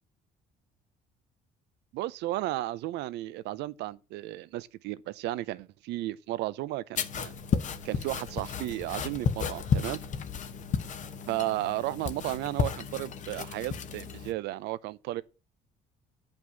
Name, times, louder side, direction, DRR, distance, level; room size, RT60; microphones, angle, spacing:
voice 1, 1.9-7.3 7.8-10.0 11.3-15.2, right 16 dB, 85° right, 0.6 m, -34 dB
sound 1, 7.0-14.3, left 6 dB, 45° left, 1.0 m, -33 dB
9.5 x 5.4 x 7.4 m
cardioid pair, 110°, 17 cm